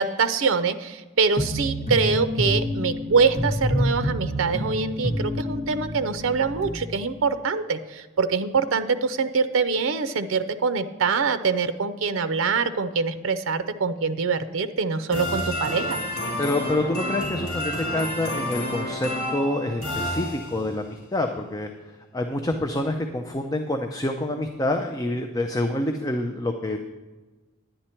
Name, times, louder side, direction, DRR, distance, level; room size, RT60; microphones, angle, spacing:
voice 1, 0.0-16.0, right 5 dB, 80° right, 11 dB, 0.5 m, -24 dB
sound 1, 1.4-6.7, equal, 30° left, 2.0 m, -27 dB
sound 2, 15.1-20.8, left 1 dB, 65° left, 2.9 m, -30 dB
voice 2, 16.4-21.7 22.1-26.8, left 1 dB, 15° left, 4 dB, 0.5 m, -27 dB
10.5 x 9.9 x 4.4 m, 1.2 s
head